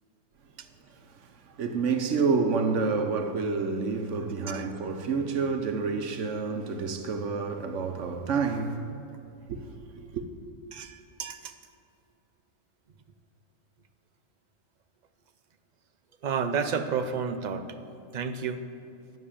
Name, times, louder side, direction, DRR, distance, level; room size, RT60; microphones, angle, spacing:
voice 1, 1.6-8.9 9.5-10.2, right 4 dB, 70° right, 1.1 m, -29 dB
voice 2, 10.7-11.5 16.2-17.8 18.1-18.6, right 6 dB, 50° right, 0.6 m, -31 dB
11.5 x 6.6 x 8.5 m
omnidirectional pair, 1.3 m